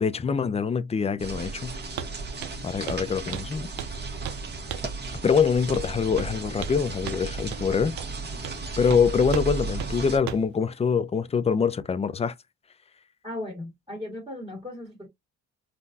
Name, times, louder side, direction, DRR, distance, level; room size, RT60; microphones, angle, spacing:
voice 1, 0.0-1.7 2.6-3.7 5.2-8.0 8.8-12.3, left 6 dB, 20° left, 0.4 m, -24 dB
sound 1, 1.2-10.2, right 3 dB, 35° right, 1.4 m, -35 dB
Walk footsteps, 2.0-2.1 2.4-2.6 2.9-3.1 3.3-4.0 4.2-4.4 4.7-5.0 5.7-5.9 6.2-6.8 7.1-7.2 7.5-7.6 8.0-8.1 8.4-8.6 8.9-9.0 9.3-9.5 9.8-9.9 10.3-10.5, right 9 dB, 70° right, 0.6 m, -35 dB
voice 2, 13.2-15.1, left 1 dB, 20° right, 1.9 m, -37 dB
3.7 x 2.4 x 2.7 m
cardioid pair, 90°, 30 cm